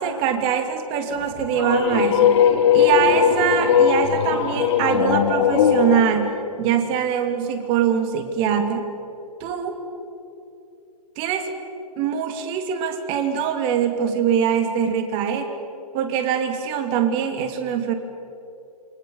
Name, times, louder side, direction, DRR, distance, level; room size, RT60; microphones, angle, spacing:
voice 1, 0.0-2.4 2.7-8.8 9.4-9.8 11.2-11.5 12.0-15.5 15.9-17.9, right 8 dB, 25° right, 6 dB, 2.7 m, -23 dB
sound 1, 1.2-6.1, left 8 dB, 45° left, 2.8 m, -19 dB
29.5 x 24.0 x 7.2 m, 2.8 s
figure-of-eight pair, 135°, 20 cm